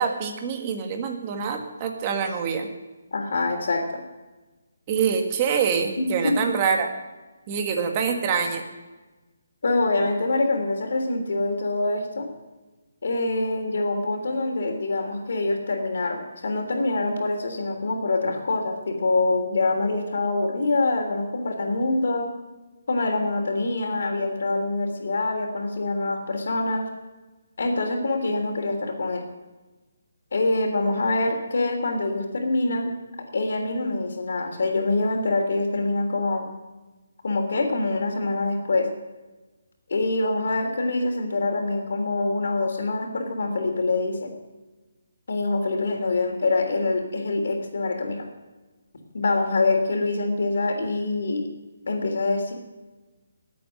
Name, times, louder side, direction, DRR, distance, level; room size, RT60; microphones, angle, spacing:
voice 1, 0.0-2.7 4.9-6.9 7.5-8.6, right 6 dB, 20° right, 4 dB, 1.6 m, -25 dB
voice 2, 3.1-4.0 6.0-6.5 9.6-12.3 13.0-22.3 22.9-26.9 27.6-29.2 30.3-32.9 33.3-36.5 37.2-38.9 39.9-44.3 45.3-48.3 49.1-51.5 51.9-52.5, left 2 dB, 60° left, 3 dB, 3.4 m, -25 dB
18.5 x 8.5 x 6.5 m, 1.2 s
hypercardioid pair, 170°, 0 cm